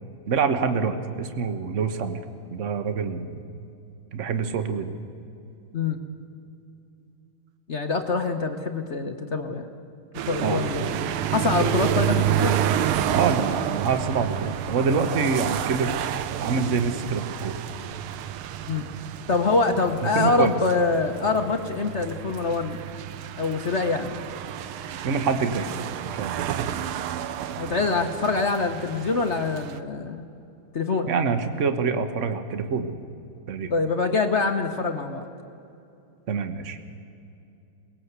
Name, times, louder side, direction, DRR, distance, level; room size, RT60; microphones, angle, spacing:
voice 1, 0.3-2.2 2.5-3.3 4.1-4.9 10.4-10.6 13.1-16.0 16.4-17.6 20.0-20.5 25.0-25.7 26.1-26.4 31.1-33.0 33.5-33.7 36.3-36.8, right 5 dB, 40° right, 8 dB, 1.3 m, -26 dB
voice 2, 7.7-9.7 10.3-11.0 11.3-12.5 18.7-18.9 19.3-22.8 23.4-24.2 27.6-30.2 30.7-31.1 33.7-35.2, left 3 dB, 45° left, 5 dB, 1.0 m, -25 dB
sound 1, 10.1-29.8, right 10 dB, 75° right, 1.6 m, -29 dB
22.5 x 20.0 x 8.2 m, 2.7 s
omnidirectional pair, 2.4 m